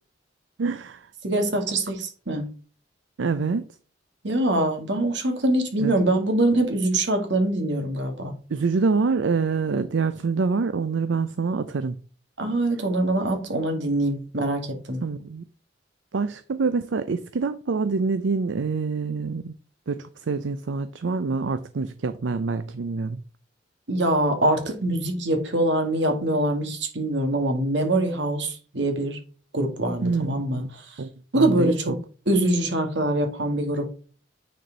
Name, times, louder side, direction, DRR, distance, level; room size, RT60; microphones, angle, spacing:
voice 1, 0.6-1.1 3.2-3.7 5.8-5.9 8.5-12.0 15.0-15.5 16.1-19.5 19.9-23.2 30.0-30.7 31.0-32.0, right 4 dB, 90° right, 0.5 m, -26 dB
voice 2, 1.2-2.5 4.2-8.3 12.4-15.0 23.9-29.2 29.5-30.6 31.3-32.0 32.3-33.9, right 1 dB, 75° right, 1.9 m, -24 dB
9.4 x 4.4 x 3.9 m
head